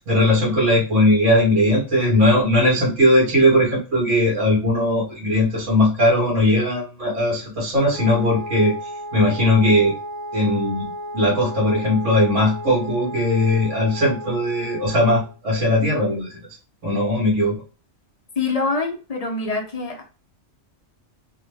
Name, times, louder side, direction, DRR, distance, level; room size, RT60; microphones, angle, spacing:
voice 1, 0.0-9.9 10.3-16.4 16.8-17.6, left 1 dB, 75° right, 1.4 m, -19 dB
Wind instrument woodwind instrument, 7.9-15.3, equal, 65° left, 1.0 m, -34 dB
voice 2, 18.4-20.0, left 3 dB, 45° left, 0.5 m, -25 dB
3.0 x 2.0 x 3.2 m
omnidirectional pair, 1.3 m